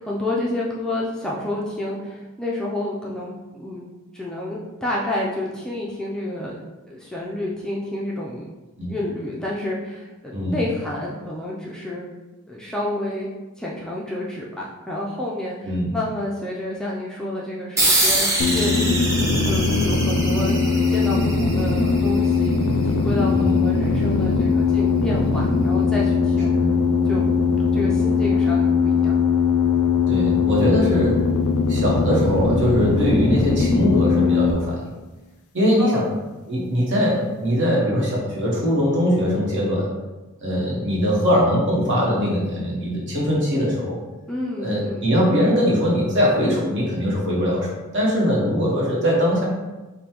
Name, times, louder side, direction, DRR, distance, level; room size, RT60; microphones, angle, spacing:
voice 1, 0.0-3.8 4.1-6.6 6.9-8.5 8.9-12.1 12.5-13.3 13.6-19.0 19.5-22.5 22.9-26.5 27.1-27.3 27.7-29.3 35.8-36.1 44.3-45.0, left 1 dB, 5° left, -5 dB, 0.4 m, -29 dB
voice 2, 15.6-15.9 23.3-23.6 26.5-26.7 30.1-31.2 31.7-34.9 35.5-36.0 36.5-39.9 40.4-44.0 44.6-49.4, equal, 55° right, -4 dB, 1.2 m, -21 dB
sound 1, 17.8-22.7, right 1 dB, 15° right, 0.7 m, -25 dB
sound 2, 18.4-34.5, left 4 dB, 80° left, 0.4 m, -20 dB
5.2 x 2.2 x 2.9 m, 1.1 s
head